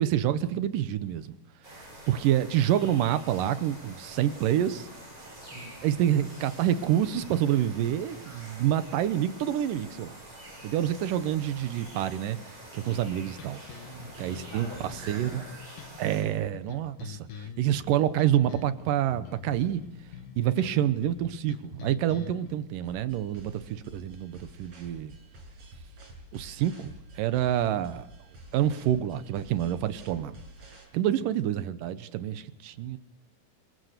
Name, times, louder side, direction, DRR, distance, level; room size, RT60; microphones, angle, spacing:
voice 1, 0.0-1.3 2.1-4.9 5.8-10.2 10.6-12.4 12.7-13.6 14.2-14.7 15.1-15.4 16.0-19.8 20.4-25.1 26.3-28.1 28.5-30.3 30.9-33.0, right 11 dB, 80° right, 2.6 m, -27 dB
sound 1, 1.6-16.2, right 1 dB, 25° right, 7.6 m, -47 dB
voice 2, 5.3-5.8 13.8-15.6 31.2-31.3, right 1 dB, 40° left, 5.7 m, -45 dB
sound 2, 12.9-22.5, left 7 dB, 75° left, 3.1 m, -45 dB
sound 3, 22.8-30.8, right 1 dB, 50° right, 7.2 m, -49 dB
25.5 x 22.0 x 6.8 m
omnidirectional pair, 3.9 m